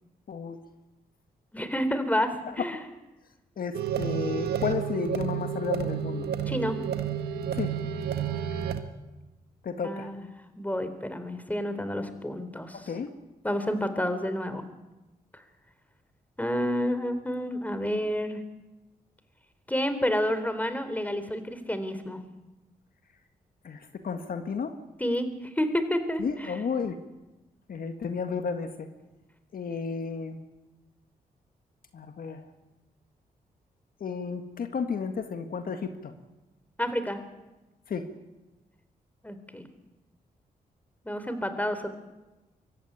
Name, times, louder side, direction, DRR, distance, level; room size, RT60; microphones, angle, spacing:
voice 1, 1.5-2.8 6.5-6.8 9.8-10.3 10.6-12.9 13.4-14.6 15.3-15.4 16.4-18.4 19.7-22.2 25.0-25.3 25.6-26.5 36.8-37.2 39.2-39.7 41.1-41.9, equal, 10° left, 10 dB, 3.7 m, -29 dB
voice 2, 3.6-6.3 7.5-7.7 9.6-10.1 12.7-13.1 23.6-24.8 26.2-27.0 27.7-28.9 29.5-30.4 31.9-32.4 34.0-36.1 37.9-38.1, left 5 dB, 65° left, 7 dB, 1.8 m, -32 dB
sound 1, 3.7-8.8, right 8 dB, 85° right, 1.6 m, -30 dB
24.5 x 14.0 x 9.8 m, 1.1 s
supercardioid pair, 55°, 16 cm